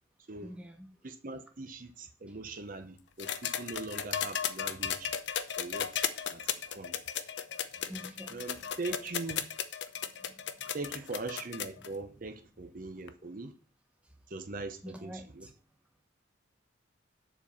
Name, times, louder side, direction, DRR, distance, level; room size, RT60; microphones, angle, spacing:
voice 1, 0.4-0.9 7.9-8.4 10.2-10.3 10.6-10.7 14.8-15.5, equal, 5° right, 1.1 m, -46 dB
voice 2, 1.0-5.1 5.6-5.9 6.3-6.4 6.7-6.9 7.8-8.0 8.3-9.4 10.7-13.5 14.3-15.5, right 3 dB, 45° right, 0.8 m, -41 dB
sound 1, 3.2-11.9 13.1-13.2, left 8 dB, 70° left, 0.7 m, -35 dB
7.3 x 4.5 x 7.0 m
head